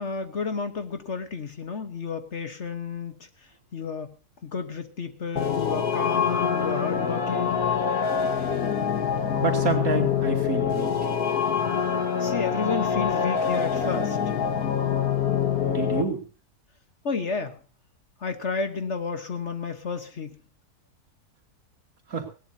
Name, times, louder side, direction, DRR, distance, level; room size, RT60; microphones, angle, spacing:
voice 1, 0.0-3.1 3.7-4.1 4.4-7.6 12.2-14.2 17.0-17.6 18.2-20.4, left 5 dB, 50° left, 1.4 m, -31 dB
sound 1, 5.4-16.0, left 7 dB, 70° left, 1.9 m, -25 dB
voice 2, 9.4-10.9 15.6-16.2 22.1-22.3, right 5 dB, 60° right, 3.0 m, -28 dB
19.5 x 17.5 x 2.8 m
omnidirectional pair, 1.7 m